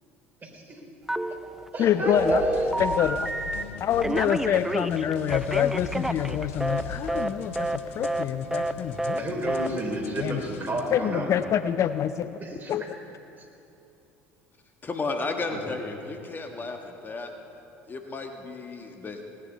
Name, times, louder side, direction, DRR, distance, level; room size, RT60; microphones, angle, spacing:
voice 1, 0.4-0.8 1.7-2.7 9.2-11.4 12.4-12.7 13.4-13.5 15.5-15.8, right 1 dB, 30° right, 0 dB, 3.6 m, -31 dB
Telephone, 1.1-1.7 2.0-3.6 4.0-6.8 7.1-7.3 7.6-7.8 8.0-8.3 8.5-8.7 9.0-9.2 9.5-9.7, right 1 dB, 5° right, 0.6 m, -29 dB
voice 2, 1.8-2.4 2.8-3.2 3.8-9.3 10.2-10.4 10.9-12.4 12.7-12.8, left 10 dB, 45° left, 13 dB, 0.4 m, -26 dB
sound 1, 2.1-10.8, left 5 dB, 80° left, 0.8 m, -41 dB
voice 3, 14.8-17.3 17.9-19.2, left 3 dB, 30° left, 4 dB, 1.4 m, -33 dB
18.0 x 10.0 x 5.5 m, 2.8 s
hypercardioid pair, 65°, 7 cm